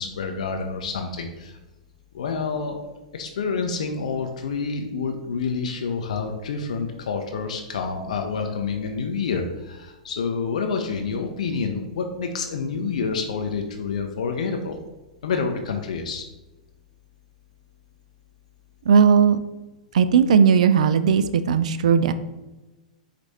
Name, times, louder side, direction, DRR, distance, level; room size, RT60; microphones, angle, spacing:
voice 1, 0.0-1.6 2.1-2.8 3.1-14.8 15.2-16.2, left 5 dB, 65° left, 4 dB, 0.5 m, -28 dB
voice 2, 18.9-19.4 19.9-22.1, right 6 dB, 65° right, 12 dB, 0.3 m, -17 dB
4.6 x 2.5 x 4.1 m, 1.1 s
hypercardioid pair, 105°, 4 cm